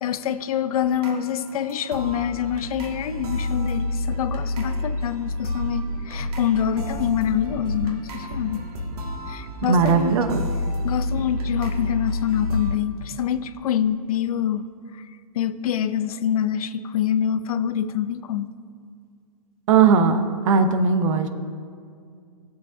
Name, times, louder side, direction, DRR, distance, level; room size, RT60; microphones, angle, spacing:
voice 1, 0.0-8.6 9.3-10.2 10.8-14.7 14.9-15.0 15.3-18.5, left 9 dB, 65° left, 13 dB, 0.6 m, -25 dB
sound 1, 1.0-12.7, left 1 dB, 75° right, 1.9 m, -29 dB
voice 2, 9.6-10.4 19.7-21.3, right 5 dB, 55° right, 8 dB, 0.8 m, -18 dB
15.5 x 7.6 x 2.7 m, 2.2 s
hypercardioid pair, 140°, 20 cm